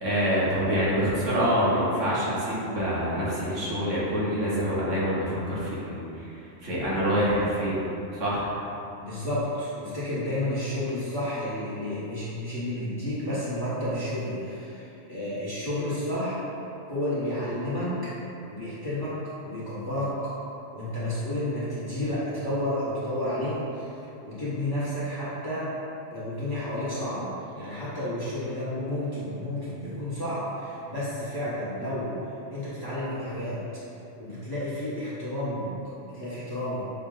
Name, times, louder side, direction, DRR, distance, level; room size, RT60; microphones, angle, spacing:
voice 1, 0.0-7.8 8.1-8.4, equal, 80° right, -8 dB, 1.5 m, -26 dB
voice 2, 9.0-16.4 16.9-18.1 18.5-19.1 19.4-20.1 20.7-25.7 26.1-32.1 32.5-33.6 34.2-35.7 36.1-36.8, left 1 dB, 20° left, -11 dB, 1.0 m, -31 dB
6.3 x 2.2 x 3.8 m, 2.8 s
omnidirectional pair, 1.3 m